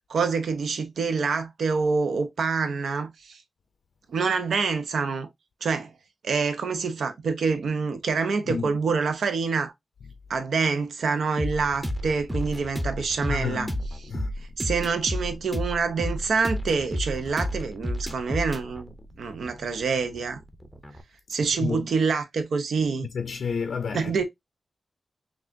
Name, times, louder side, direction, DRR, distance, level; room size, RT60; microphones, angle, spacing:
voice 1, 0.1-3.4 4.1-5.3 5.6-5.9 6.2-9.7 10.3-13.7 14.6-18.9 19.2-20.4 21.3-23.1 23.9-24.2, right 5 dB, 90° right, 0.7 m, -26 dB
sound 1, 11.4-21.0, equal, ahead, 0.6 m, -32 dB
voice 2, 13.3-13.8 14.1-14.3 21.4-21.9 23.0-24.2, left 6 dB, 70° left, 0.4 m, -31 dB
6.0 x 2.4 x 2.5 m
wide cardioid pair, 170°, 0 cm